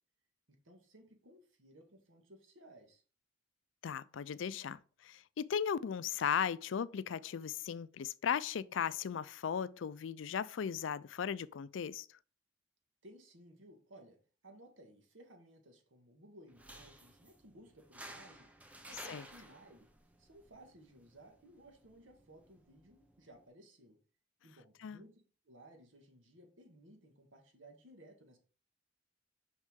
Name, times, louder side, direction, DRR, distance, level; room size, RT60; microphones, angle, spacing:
voice 1, 0.5-3.0 13.0-14.2 14.4-18.5 18.9-19.9 20.2-24.0 24.4-28.4, right 1 dB, 85° right, 1.7 m, -59 dB
voice 2, 3.8-12.1 19.1-19.2 24.8-25.0, left 7 dB, 75° left, 0.4 m, -37 dB
sound 1, 16.5-23.5, right 1 dB, 10° right, 0.7 m, -55 dB
6.2 x 5.4 x 3.7 m
head